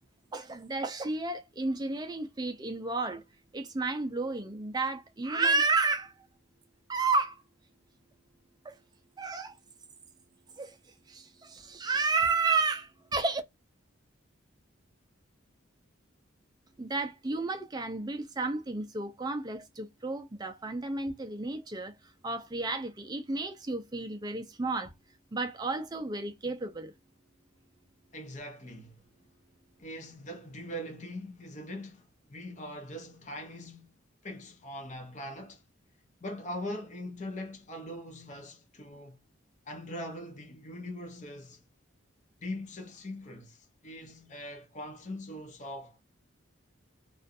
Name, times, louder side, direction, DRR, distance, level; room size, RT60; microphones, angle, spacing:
voice 1, 0.3-3.2 3.5-6.1 6.9-7.4 8.7-8.8 9.2-9.5 10.6-10.7 11.1-13.4 16.8-21.9 22.2-24.9 25.3-26.9, right 3 dB, 20° right, 0.4 m, -31 dB
voice 2, 28.1-29.0 29.8-35.6 36.2-39.2 39.7-41.6 42.4-46.0, left 1 dB, 35° left, 0.6 m, -41 dB
2.4 x 2.2 x 2.5 m
head